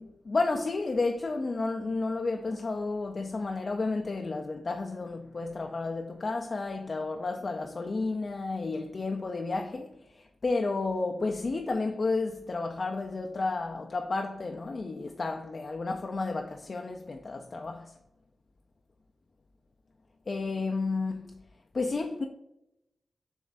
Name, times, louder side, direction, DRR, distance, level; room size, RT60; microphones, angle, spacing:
voice 1, 0.0-17.9 20.3-21.3 21.7-22.2, left 3 dB, 40° left, 0.3 m, -32 dB
7.1 x 3.1 x 2.4 m
wide cardioid pair, 135°, 0 cm